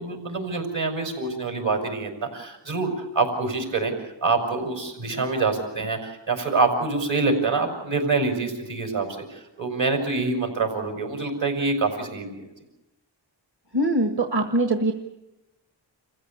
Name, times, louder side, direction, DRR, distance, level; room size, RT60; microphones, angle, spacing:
voice 1, 0.0-12.4, right 3 dB, 75° right, 3 dB, 5.8 m, -26 dB
voice 2, 13.7-14.9, right 1 dB, 55° right, 7 dB, 1.7 m, -22 dB
26.5 x 15.0 x 8.7 m, 0.95 s
cardioid pair, 45°, 45 cm